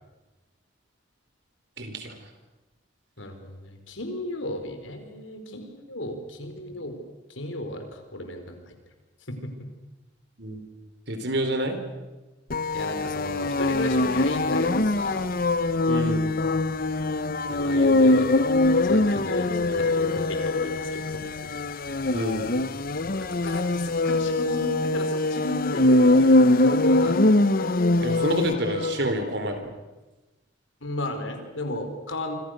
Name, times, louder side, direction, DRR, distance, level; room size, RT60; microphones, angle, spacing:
voice 1, 1.8-2.2 10.4-10.6 11.1-11.8 15.9-16.3 22.1-22.5 28.0-29.7, equal, 60° right, 7 dB, 4.4 m, -28 dB
voice 2, 3.2-7.0 7.3-8.8 9.3-9.7 12.7-15.3 17.5-18.3 18.8-21.7 23.0-27.2 30.8-32.3, left 1 dB, 85° left, 6 dB, 4.7 m, -34 dB
sound 1, 12.5-29.1, left 2 dB, 50° left, 0.9 m, -22 dB
28.5 x 25.5 x 6.6 m, 1.1 s
head